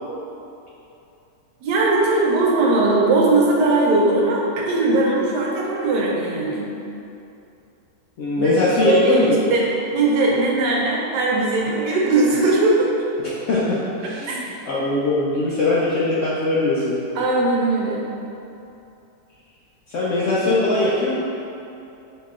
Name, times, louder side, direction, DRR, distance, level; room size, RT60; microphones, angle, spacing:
voice 1, 1.6-6.7 8.4-8.6 8.8-9.6 9.9-12.9 14.2-14.4 17.2-18.1, right 2 dB, 80° right, -3 dB, 1.3 m, -19 dB
voice 2, 8.2-9.3 13.5-17.0 19.9-21.2, left 2 dB, 80° left, -8 dB, 0.6 m, -21 dB
4.7 x 3.0 x 2.4 m, 2.8 s
omnidirectional pair, 1.8 m